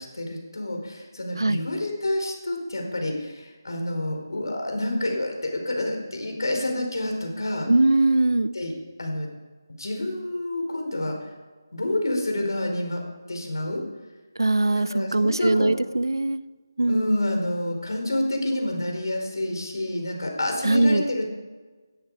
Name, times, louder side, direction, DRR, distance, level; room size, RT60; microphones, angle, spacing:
voice 1, 0.0-7.7 8.5-8.7 9.0-9.3 9.8-11.3 11.7-13.0 13.3-13.8 14.7-15.7 16.9-21.3, left 1 dB, 70° left, 2 dB, 4.8 m, -28 dB
voice 2, 7.7-8.5 14.4-16.4 16.8-17.2 20.6-21.0, right 2 dB, 90° right, 17 dB, 0.7 m, -21 dB
16.5 x 11.0 x 4.9 m, 1.3 s
figure-of-eight pair, 170°, 2 cm